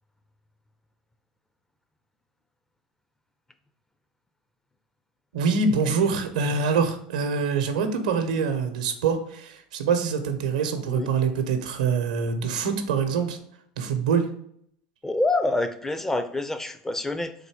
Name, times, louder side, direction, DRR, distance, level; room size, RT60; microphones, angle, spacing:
voice 1, 5.3-13.4 13.8-14.3, right 5 dB, 90° right, 7 dB, 0.7 m, -25 dB
voice 2, 15.0-17.3, left 2 dB, 10° left, 10 dB, 0.4 m, -26 dB
3.9 x 2.7 x 4.7 m, 0.67 s
supercardioid pair, 100°, 4 cm